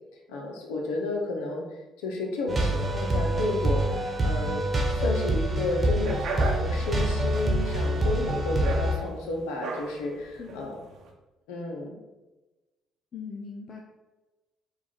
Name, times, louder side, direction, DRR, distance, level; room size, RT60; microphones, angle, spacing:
voice 1, 0.3-10.8 11.5-11.9, left 2 dB, 80° left, 1 dB, 0.8 m, -32 dB
sound 1, 2.5-9.0, right 1 dB, 30° right, 1.0 m, -26 dB
sound 2, 6.0-11.1, right 4 dB, 65° right, 0.7 m, -37 dB
voice 2, 10.4-10.7 13.1-13.8, left 5 dB, 50° left, 1 dB, 0.5 m, -40 dB
4.6 x 2.4 x 4.1 m, 1.1 s
hypercardioid pair, 60°, 0 cm